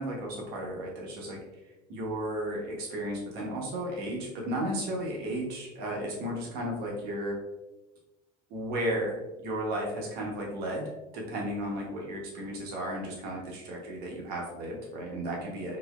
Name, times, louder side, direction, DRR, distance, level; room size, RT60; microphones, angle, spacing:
voice 1, 0.0-1.4 1.9-7.4 8.5-15.8, right 1 dB, 60° right, -2 dB, 0.9 m, -34 dB
4.1 x 2.7 x 2.3 m, 1.0 s
cardioid pair, 145°, 18 cm